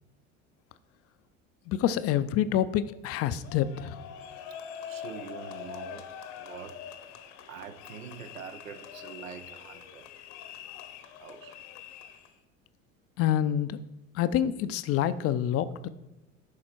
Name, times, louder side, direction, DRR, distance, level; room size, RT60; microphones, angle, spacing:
voice 1, 1.7-4.0 13.2-13.8 14.1-15.9, left 10 dB, 40° left, 14 dB, 0.4 m, -27 dB
sound 1, 3.4-12.4, left 8 dB, 60° left, 1.0 m, -44 dB
voice 2, 4.9-6.1 6.4-6.8 7.5-10.1 11.2-11.6 14.5-14.6, right 7 dB, 85° right, 10 dB, 0.7 m, -44 dB
11.0 x 4.2 x 4.4 m, 1.0 s
figure-of-eight pair, 70°, 39 cm